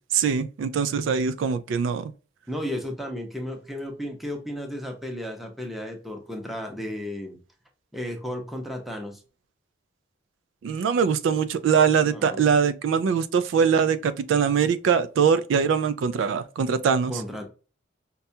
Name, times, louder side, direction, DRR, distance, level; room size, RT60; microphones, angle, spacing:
voice 1, 0.1-2.1 10.6-17.1, right 6 dB, 80° right, 0.3 m, -22 dB
voice 2, 2.5-7.4 7.9-9.2 12.0-12.4 17.1-17.4, left 1 dB, ahead, 0.6 m, -34 dB
5.3 x 2.2 x 2.7 m
head